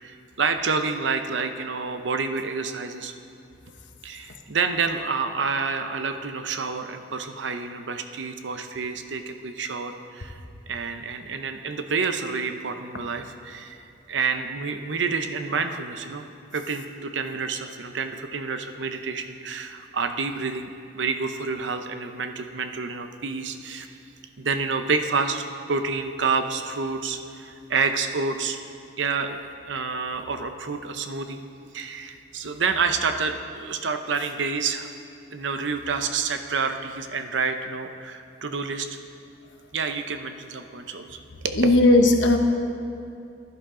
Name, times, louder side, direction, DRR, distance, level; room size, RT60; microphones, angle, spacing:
voice 1, 0.0-3.1 4.0-16.3 16.5-24.0 24.4-28.6 29.0-31.4 31.7-34.9 35.3-38.9 39.7-41.6, right 5 dB, 75° right, 7 dB, 0.7 m, -28 dB
voice 2, 41.6-42.4, left 2 dB, 80° left, 4 dB, 1.0 m, -16 dB
15.0 x 11.0 x 3.8 m, 2.5 s
head